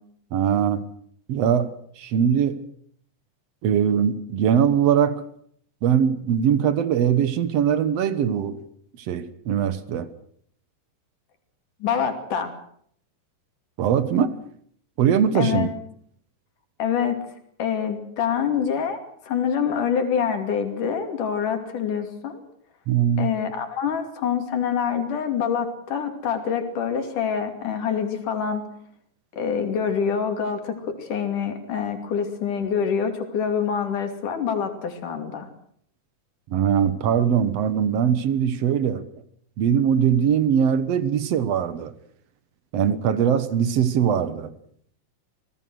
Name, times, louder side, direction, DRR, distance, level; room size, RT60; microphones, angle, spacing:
voice 1, 0.3-0.9 1.3-2.7 3.6-5.2 5.8-8.6 9.1-10.1 13.8-14.4 15.0-15.7 22.9-23.3 36.5-39.1 39.6-41.9 42.7-44.5, right 8 dB, 60° right, 2.0 m, -21 dB
voice 2, 11.8-12.5 15.3-15.7 16.8-17.2 17.6-19.0 19.3-22.4 23.2-28.7 29.4-35.5, left 7 dB, 70° left, 4.2 m, -26 dB
26.5 x 18.5 x 6.3 m
omnidirectional pair, 3.8 m